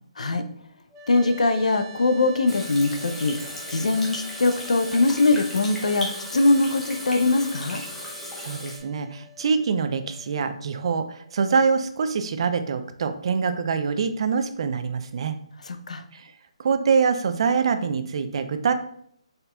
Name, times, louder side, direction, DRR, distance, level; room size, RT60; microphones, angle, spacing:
sound 1, 0.9-12.0, right 5 dB, 20° right, 0.9 m, -47 dB
voice 1, 1.1-3.4 3.7-7.8 15.7-16.0, left 2 dB, 80° left, 8 dB, 0.5 m, -22 dB
Water tap faucet / Sink (filling or washing), 2.5-8.8, left 1 dB, 5° left, 0.7 m, -36 dB
voice 2, 8.4-15.3 16.1-16.3 16.6-18.7, right 5 dB, 50° right, 10 dB, 0.4 m, -24 dB
4.2 x 3.8 x 2.2 m, 0.65 s
hypercardioid pair, 155°, 4 cm